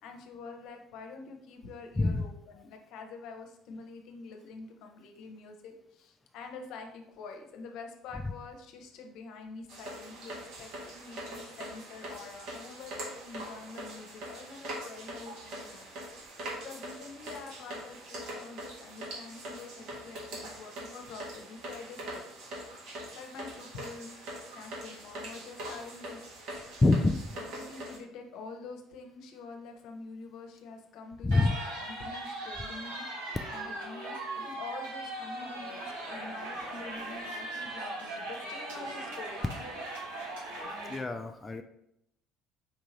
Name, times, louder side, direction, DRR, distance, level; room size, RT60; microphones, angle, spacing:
voice 1, 0.0-15.9 16.5-22.2 23.1-24.3 24.5-26.6 27.5-31.5 31.7-33.0 33.5-39.7, left 4 dB, 65° left, 4 dB, 0.8 m, -46 dB
sound 1, 9.7-28.0, right 1 dB, 65° right, 1.6 m, -43 dB
voice 2, 26.8-27.4 31.2-31.6 40.9-41.6, left 2 dB, 20° left, 6 dB, 0.4 m, -26 dB
sound 2, 31.3-41.0, right 2 dB, 85° right, 1.7 m, -39 dB
4.5 x 3.7 x 3.1 m, 0.76 s
hypercardioid pair, 60°, 0 cm